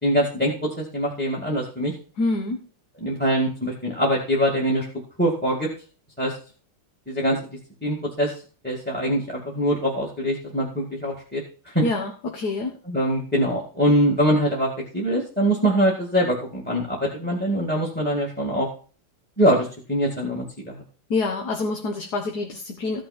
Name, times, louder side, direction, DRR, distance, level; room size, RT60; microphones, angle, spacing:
voice 1, 0.0-0.5 0.8-1.9 3.0-4.9 5.2-5.7 6.2-6.3 7.1-7.4 7.8-8.3 8.6-11.4 11.7-11.8 12.9-18.7 19.4-20.8, equal, 5° left, -1 dB, 2.1 m, -23 dB
voice 2, 2.2-2.6 11.8-12.7 21.1-23.0, left 3 dB, 50° left, 2 dB, 1.7 m, -26 dB
15.0 x 6.2 x 4.3 m, 0.39 s
omnidirectional pair, 2.3 m